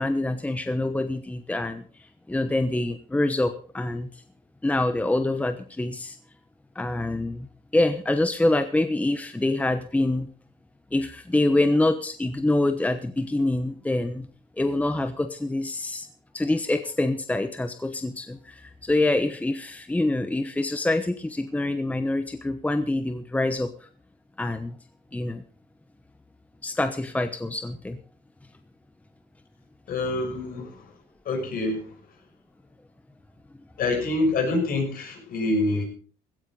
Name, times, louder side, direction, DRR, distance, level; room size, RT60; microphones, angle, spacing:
voice 1, 0.0-1.8 2.3-4.2 4.6-6.2 6.7-7.5 7.7-10.3 10.9-14.3 14.6-16.1 16.3-23.7 24.4-24.8 25.1-25.4 26.6-28.0, left 2 dB, 10° left, 8 dB, 1.1 m, -25 dB
voice 2, 29.9-30.9 31.2-31.9 33.8-35.8, left 2 dB, 60° left, 3 dB, 6.6 m, -26 dB
16.5 x 14.5 x 4.0 m, 0.43 s
cardioid pair, 110°, 17 cm